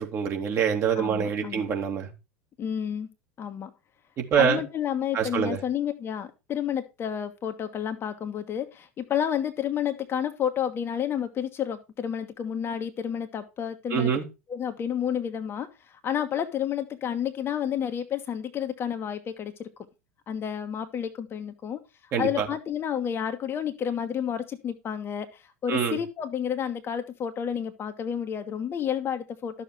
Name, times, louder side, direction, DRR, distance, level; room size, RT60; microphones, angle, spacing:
voice 1, 0.0-2.1 4.2-4.6 5.1-5.6 13.9-14.2 22.1-22.5 25.7-26.0, right 7 dB, 35° right, 3 dB, 2.6 m, -25 dB
voice 2, 0.9-1.7 2.6-3.1 3.4-3.7 4.3-14.1 14.5-19.7 20.3-29.6, left 9 dB, 30° left, 7 dB, 1.4 m, -30 dB
12.0 x 7.0 x 4.5 m, 0.27 s
figure-of-eight pair, 80°, 8 cm